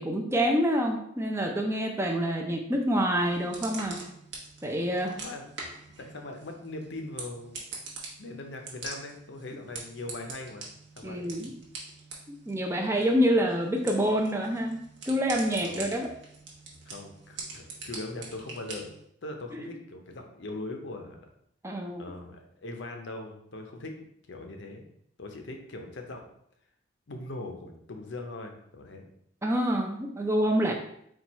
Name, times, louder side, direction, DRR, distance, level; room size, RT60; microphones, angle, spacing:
voice 1, 0.0-4.0 4.6-5.1 11.0-11.5 12.5-14.8 15.1-16.1 19.6-19.7 21.6-22.0 29.4-30.7, equal, 15° right, 1 dB, 0.4 m, -27 dB
sound 1, 3.1-19.0, right 3 dB, 65° right, 1.0 m, -44 dB
voice 2, 5.1-5.5 6.0-7.6 8.2-11.4 15.6-15.9 16.8-18.9 19.2-21.3 22.0-23.9 24.3-24.8 25.2-26.3 27.1-29.0, left 2 dB, 65° left, 4 dB, 0.6 m, -40 dB
4.4 x 2.3 x 4.1 m, 0.71 s
head